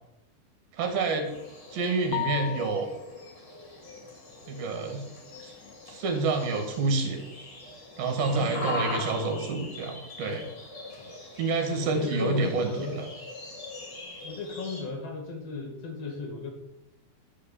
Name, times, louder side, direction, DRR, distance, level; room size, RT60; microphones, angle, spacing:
voice 1, 0.7-1.3 1.7-2.9 4.5-5.0 5.4-5.5 5.9-7.2 8.0-10.4 11.4-13.1, right 3 dB, 70° right, 4 dB, 3.6 m, -28 dB
sound 1, 1.2-14.8, left 2 dB, 30° left, 2.8 m, -41 dB
sound 2, 2.1-3.2, left 14 dB, 80° left, 2.2 m, -34 dB
voice 2, 8.3-9.1 11.0-11.2 11.8-13.0 14.2-16.5, left 4 dB, 50° left, 3 dB, 2.5 m, -36 dB
12.0 x 6.2 x 7.2 m, 0.86 s
omnidirectional pair, 4.4 m